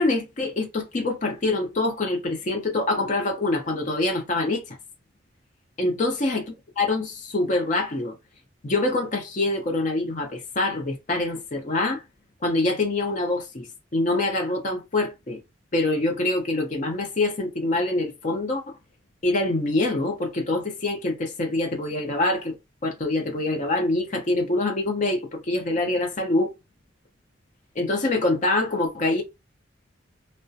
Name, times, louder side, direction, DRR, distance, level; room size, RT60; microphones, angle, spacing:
voice 1, 0.0-4.8 5.8-6.4 6.8-8.2 8.6-12.0 12.4-15.4 15.7-18.8 19.2-22.6 22.8-26.5 27.8-29.2, left 2 dB, 45° left, 0.6 m, -25 dB
2.3 x 2.1 x 2.5 m
head